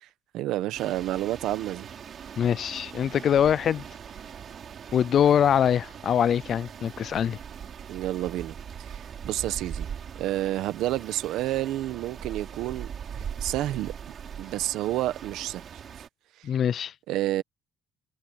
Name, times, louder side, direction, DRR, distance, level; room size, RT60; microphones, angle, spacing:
voice 1, 0.3-1.9 7.9-9.9 10.2-12.9 13.2-13.9 14.4-15.6 16.4-16.5 17.1-17.4, right 14 dB, 65° right, 1.0 m, -29 dB
sound 1, 0.8-16.1, right 8 dB, 35° right, 4.5 m, -41 dB
voice 2, 2.4-3.8 4.9-7.4 16.4-16.9, left 9 dB, 35° left, 0.3 m, -23 dB
cardioid pair, 170°, 0 cm